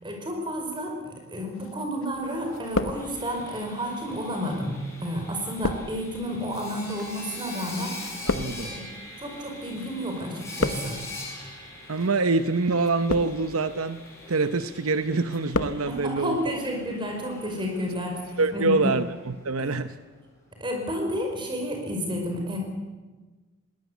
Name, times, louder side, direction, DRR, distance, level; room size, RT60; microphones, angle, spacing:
voice 1, 0.0-7.9 8.6-8.8 9.2-11.0 15.9-18.2 18.5-19.0 19.6-19.7 20.6-22.6, equal, 20° right, 2 dB, 5.5 m, -31 dB
sound 1, 1.6-2.2 2.5-3.5 4.2-9.9 10.1-11.1 11.8-12.1 12.8-13.6 14.1-14.5 14.9-15.8 16.1-16.2, left 2 dB, 75° left, 1.2 m, -32 dB
Sawing, 2.1-19.9, left 2 dB, 15° left, 6.4 m, -43 dB
voice 2, 8.3-8.7 11.9-14.0 14.3-16.5 18.4-19.9, right 3 dB, 80° right, 11 dB, 0.9 m, -25 dB
21.5 x 18.5 x 8.3 m, 1.3 s
head